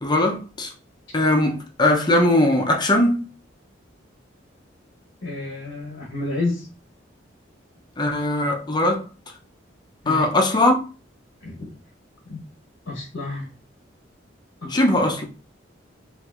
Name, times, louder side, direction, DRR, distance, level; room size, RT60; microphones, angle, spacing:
voice 1, 0.0-0.7 1.1-3.3 8.0-9.1 10.1-10.8 14.7-15.3, left 1 dB, 20° left, 0.5 m, -20 dB
voice 2, 5.2-6.7 10.0-10.3 11.4-11.7 12.3-12.4 12.9-13.5 14.6-14.8, left 2 dB, 85° left, 0.9 m, -30 dB
4.4 x 2.5 x 2.4 m
head